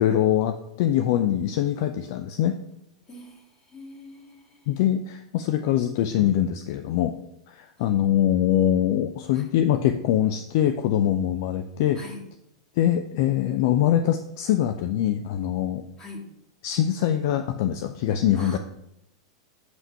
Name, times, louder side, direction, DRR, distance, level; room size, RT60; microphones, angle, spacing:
voice 1, 0.0-2.6 4.7-7.1 7.5-12.0 12.8-15.8 16.6-18.6, left 11 dB, 55° left, 9 dB, 0.4 m, -23 dB
voice 2, 3.7-4.7 12.0-12.2 16.0-16.2 18.4-18.6, left 2 dB, 25° left, -1 dB, 2.3 m, -42 dB
8.0 x 5.6 x 4.6 m, 0.81 s
figure-of-eight pair, 90°, 2 cm